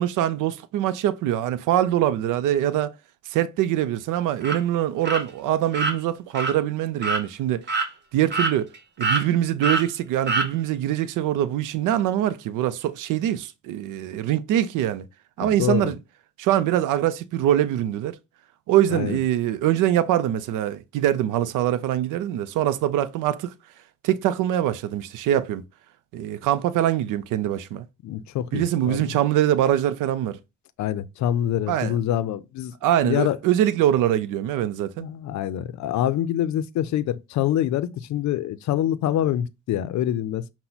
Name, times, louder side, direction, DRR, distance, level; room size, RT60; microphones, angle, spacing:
voice 1, 0.0-2.9 3.3-7.6 8.1-8.7 9.0-15.1 15.4-16.0 16.4-18.2 18.7-23.5 24.0-25.6 26.1-27.9 28.5-30.4 31.7-32.0 32.8-35.1, right 12 dB, 90° right, 0.5 m, -23 dB
sound 1, 4.4-4.6 5.0-5.2 5.7-5.9 6.3-6.5 7.0-7.2 7.7-7.9 8.3-8.8 9.0-9.2 9.6-9.8 10.3-10.5, right 3 dB, 35° right, 1.2 m, -24 dB
voice 2, 15.4-15.9 18.9-19.2 28.0-29.1 30.8-32.7 33.0-33.4 35.0-40.5, left 11 dB, 70° left, 0.5 m, -25 dB
5.7 x 2.1 x 3.9 m
cardioid pair, 90°, 30 cm